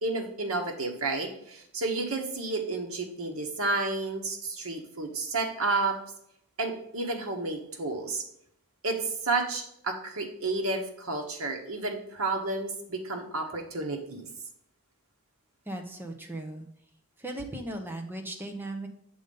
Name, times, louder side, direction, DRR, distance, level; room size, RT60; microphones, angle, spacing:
voice 1, 0.0-6.0 6.6-8.2 8.8-14.3, right 3 dB, 65° right, 2 dB, 1.3 m, -31 dB
voice 2, 15.7-16.7 17.2-18.9, right 1 dB, 10° right, 3 dB, 0.8 m, -37 dB
7.1 x 3.9 x 5.4 m, 0.72 s
head